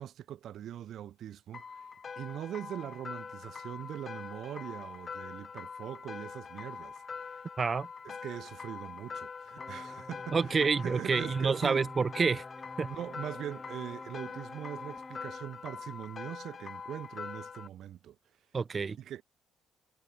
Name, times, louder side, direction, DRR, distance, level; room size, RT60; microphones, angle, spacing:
voice 1, 0.0-1.9 2.2-7.3 8.0-11.8 12.9-18.2 19.0-19.2, right 11 dB, 55° right, 2.6 m, -42 dB
sound 1, 1.5-17.7, left 5 dB, 30° left, 0.9 m, -44 dB
voice 2, 7.6-7.9 10.3-12.4 12.8-12.9 18.5-19.0, right 5 dB, 25° right, 0.5 m, -28 dB
sound 2, 9.6-15.4, left 2 dB, 10° left, 3.1 m, -49 dB
cardioid pair, 165°, 0 cm